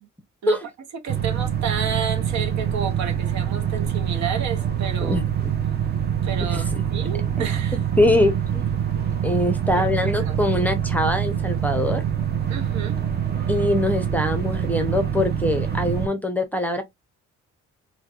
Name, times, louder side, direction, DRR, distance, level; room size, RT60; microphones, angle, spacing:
voice 1, 1.0-5.2 6.2-7.8 9.8-9.9 10.2-10.4 12.5-13.0, right 6 dB, 65° right, 0.7 m, -31 dB
sound 1, 1.1-16.1, right 9 dB, 35° right, 0.7 m, -25 dB
voice 2, 5.0-5.5 6.5-6.6 8.0-8.7 9.2-12.0 13.5-16.8, left 1 dB, 5° left, 0.6 m, -23 dB
2.6 x 2.1 x 2.3 m
cardioid pair, 90°, 30 cm